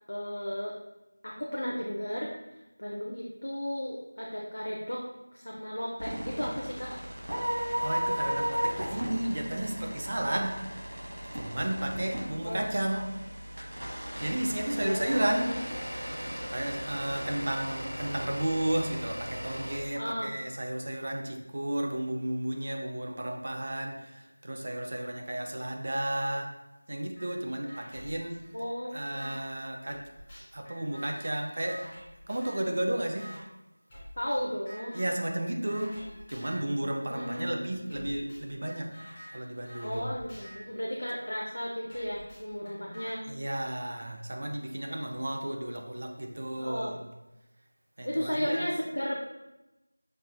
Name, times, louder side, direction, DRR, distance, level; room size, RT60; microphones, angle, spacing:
voice 1, 0.1-0.8 1.2-2.3 2.8-5.0 5.3-7.0 12.4-12.7 14.8-15.6 19.9-20.3 28.5-29.3 34.2-35.0 37.0-37.7 39.8-43.3 46.6-47.0 48.0-49.2, equal, 60° left, -3 dB, 0.5 m, -34 dB
sound 1, 6.0-19.8, equal, 65° right, 1.0 m, -36 dB
voice 2, 7.8-10.7 11.3-13.2 14.2-15.6 16.5-26.6 26.9-28.4 28.9-30.1 30.5-31.9 32.3-33.4 34.9-39.0 39.3-40.1 43.3-47.0 48.0-48.7, right 1 dB, 35° right, 3 dB, 0.4 m, -33 dB
sound 2, 27.2-27.3 27.7-29.4 29.9-32.7 33.2-33.4 33.9-34.4 34.7-35.2 35.7-36.7 37.2-37.4 37.9-41.4 41.9-43.1, equal, 15° left, 0.6 m, -49 dB
5.4 x 2.7 x 2.2 m, 0.99 s
figure-of-eight pair, 175°, 0 cm